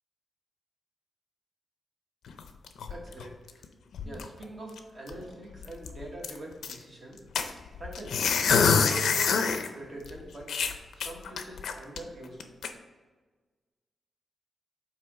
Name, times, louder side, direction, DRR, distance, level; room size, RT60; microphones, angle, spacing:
sound 1, 2.3-3.6 3.9-4.4 4.8-4.9 5.1-5.3 5.6-6.7 7.3-9.7 10.0-10.1 10.5-12.0 12.4-12.7, left 6 dB, 85° left, 0.5 m, -26 dB
voice 1, 2.9-3.6 4.0-7.3 7.8-8.1 8.6-10.5 10.9-12.4, right 1 dB, 30° right, -1 dB, 1.2 m, -43 dB
7.7 x 2.9 x 4.8 m, 1.4 s
wide cardioid pair, 175°, 0 cm